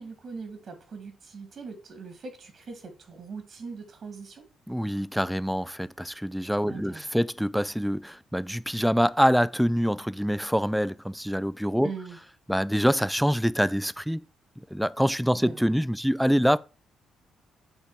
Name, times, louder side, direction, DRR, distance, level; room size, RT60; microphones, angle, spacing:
voice 1, 0.0-4.5 6.7-7.0 11.8-12.2 15.4-15.8, right 4 dB, 55° right, 2.3 m, -41 dB
voice 2, 4.7-11.9 12.5-14.2 14.7-16.6, equal, ahead, 0.3 m, -25 dB
8.0 x 3.4 x 5.0 m
cardioid pair, 90°, 0 cm